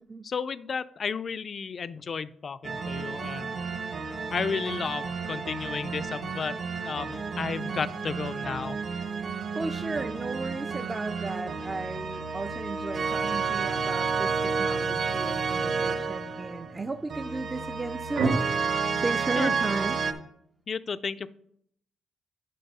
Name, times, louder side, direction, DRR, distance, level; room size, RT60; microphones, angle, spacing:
voice 1, 0.2-3.6 4.3-6.6 6.8-8.8 19.4-19.5 20.7-21.3, left 5 dB, 45° left, 15 dB, 0.4 m, -33 dB
sound 1, 2.6-20.1, right 5 dB, 55° right, 0.9 m, -31 dB
voice 2, 9.5-18.4 19.0-20.0, right 3 dB, 25° right, 7 dB, 0.4 m, -35 dB
sound 2, 11.5-18.3, right 4 dB, 75° right, 1.5 m, -39 dB
9.3 x 3.9 x 5.4 m, 0.71 s
cardioid pair, 90°, 0 cm